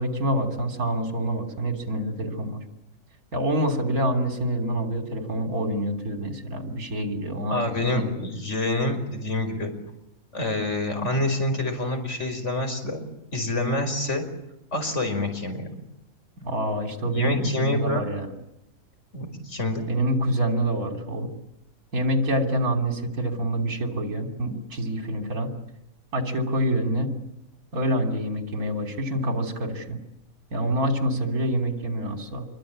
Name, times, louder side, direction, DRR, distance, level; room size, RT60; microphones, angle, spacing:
voice 1, 0.0-2.6 3.3-8.1 16.4-18.3 19.9-21.3 21.9-25.6 26.1-27.2 27.7-30.0 30.5-32.4, right 1 dB, 75° right, 4 dB, 3.7 m, -26 dB
voice 2, 7.5-9.7 10.3-13.0 13.3-14.3 14.7-15.7 17.0-18.0 19.1-19.9, left 2 dB, 50° left, 6 dB, 5.5 m, -27 dB
27.0 x 23.5 x 8.7 m, 0.85 s
omnidirectional pair, 1.5 m